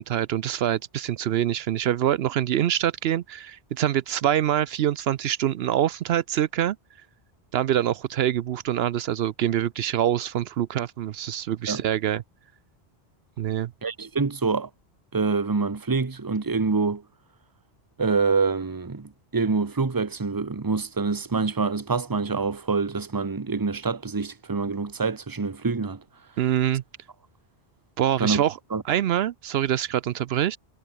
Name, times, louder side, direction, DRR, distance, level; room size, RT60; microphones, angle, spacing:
voice 1, 0.0-6.8 7.5-12.2 13.4-13.7 26.4-26.8 28.0-28.6 28.8-30.6, right 11 dB, 75° right, 0.8 m, -25 dB
voice 2, 13.8-14.7 15.1-17.0 18.0-26.0 28.2-28.4 28.7-28.8, right 4 dB, 20° right, 0.9 m, -26 dB
omnidirectional pair, 1.0 m